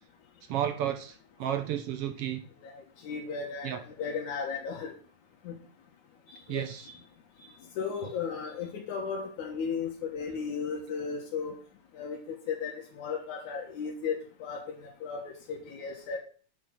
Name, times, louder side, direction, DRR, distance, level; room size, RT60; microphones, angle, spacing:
voice 1, 0.5-2.4 3.6-3.8 6.5-6.9, right 10 dB, 70° right, 9 dB, 1.5 m, -32 dB
voice 2, 2.6-4.9 5.4-5.6 6.5-6.7 7.8-11.5 11.9-16.2, left 6 dB, 90° left, -1 dB, 2.8 m, -35 dB
8.7 x 6.5 x 6.3 m, 0.43 s
omnidirectional pair, 3.3 m